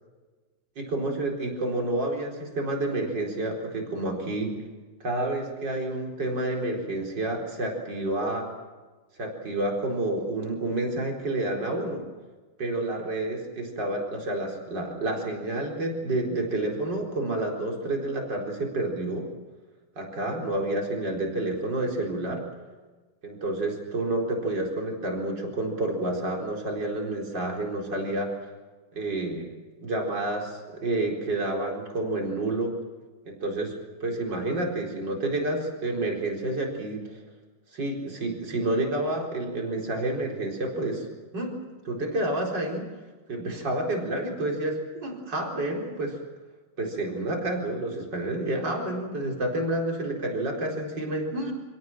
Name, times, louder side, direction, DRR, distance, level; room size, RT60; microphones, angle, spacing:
voice 1, 0.8-4.5 5.0-8.5 9.2-12.0 12.6-19.3 20.0-22.4 23.2-28.3 28.9-29.5 29.8-32.7 33.3-33.7 34.0-37.2 37.7-41.1 41.3-41.5 41.8-42.9 43.3-46.2 46.8-51.5, right 2 dB, 55° right, 0 dB, 4.9 m, -29 dB
28.0 x 17.5 x 7.6 m, 1.3 s
omnidirectional pair, 2.3 m